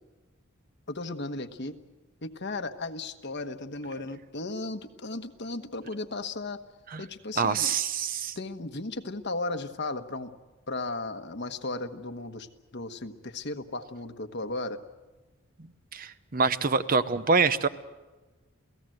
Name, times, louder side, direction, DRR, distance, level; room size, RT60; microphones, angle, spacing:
voice 1, 0.9-1.8 2.2-6.6 7.0-7.7 8.3-10.3 10.7-12.5 12.7-14.8, left 2 dB, 55° left, 8 dB, 1.2 m, -35 dB
voice 2, 7.4-8.3 15.9-17.7, right 4 dB, 40° right, 13 dB, 0.8 m, -25 dB
28.5 x 17.5 x 7.8 m, 1.2 s
head